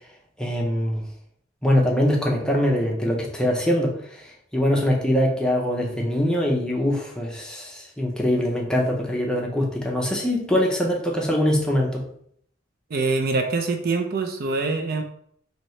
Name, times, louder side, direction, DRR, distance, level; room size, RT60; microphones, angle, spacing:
voice 1, 0.4-1.0 1.6-12.0, left 1 dB, 5° left, -2 dB, 0.6 m, -23 dB
voice 2, 12.9-15.0, right 3 dB, 50° right, 5 dB, 0.4 m, -24 dB
4.2 x 2.8 x 3.1 m, 0.67 s
head